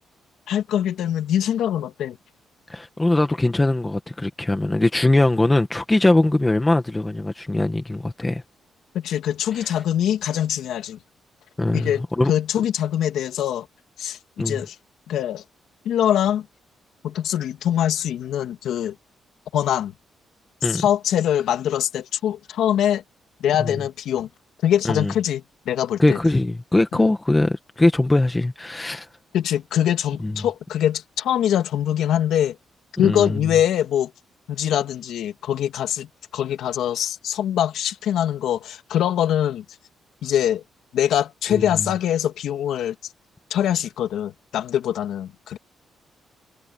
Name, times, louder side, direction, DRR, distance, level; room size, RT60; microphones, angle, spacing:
voice 1, 0.5-2.2 8.9-11.0 11.7-12.0 12.3-13.7 14.0-14.7 15.1-15.4 15.8-16.5 17.0-18.9 19.5-19.9 20.6-23.0 23.4-24.3 24.6-26.2 26.9-27.1 29.3-32.6 33.0-34.1 34.5-36.1 36.3-39.6 40.2-40.6 40.9-42.9 43.5-45.6, left 10 dB, 80° left, 2.6 m, -23 dB
voice 2, 2.7-8.4 9.6-9.7 11.6-12.3 14.4-14.6 20.6-20.8 23.6-23.7 24.8-25.1 26.0-29.1 30.2-30.4 33.0-33.4 41.5-41.6, left 2 dB, 10° left, 1.4 m, -21 dB
cardioid pair, 165°, 0 cm